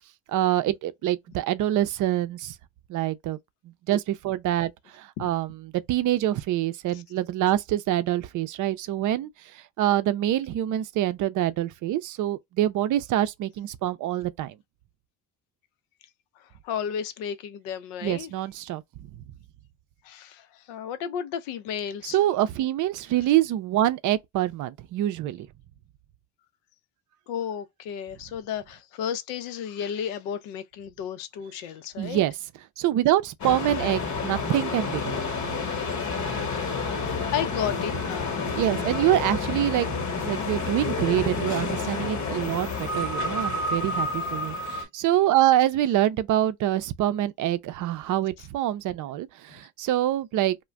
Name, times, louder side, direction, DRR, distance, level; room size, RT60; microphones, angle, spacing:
voice 1, 0.3-2.5 2.9-3.4 3.9-9.3 9.8-14.5 18.0-18.8 22.0-25.5 32.0-32.3 32.8-35.5 38.6-50.6, right 13 dB, 50° right, 0.5 m, -25 dB
voice 2, 16.6-18.3 20.0-22.2 27.3-32.2 33.8-33.9 37.0-38.5, left 8 dB, 80° left, 0.6 m, -33 dB
sound 1, 33.4-44.8, left 3 dB, 45° left, 1.1 m, -29 dB
2.4 x 2.2 x 3.1 m
hypercardioid pair, 70°, 40 cm